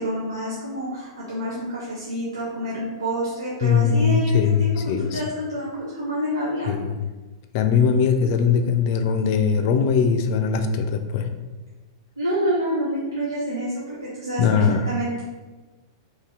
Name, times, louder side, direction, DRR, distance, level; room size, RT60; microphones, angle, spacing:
voice 1, 0.0-6.7 12.2-15.2, right 1 dB, 85° right, -7 dB, 0.7 m, -28 dB
voice 2, 3.6-5.2 6.7-6.9 7.5-11.3 14.4-14.9, left 6 dB, 45° left, 7 dB, 0.4 m, -20 dB
2.9 x 2.7 x 3.6 m, 1.2 s
figure-of-eight pair, 95°, 2 cm